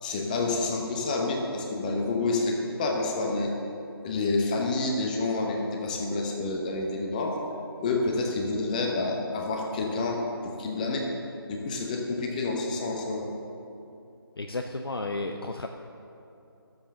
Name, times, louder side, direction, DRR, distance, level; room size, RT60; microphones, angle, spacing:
voice 1, 0.0-3.5 4.0-7.4 7.8-11.1 11.5-13.3, left 3 dB, 20° left, 0 dB, 1.0 m, -28 dB
voice 2, 14.4-15.7, left 2 dB, 70° left, 4 dB, 0.7 m, -32 dB
12.5 x 7.7 x 6.7 m, 2.8 s
figure-of-eight pair, 155°, 13 cm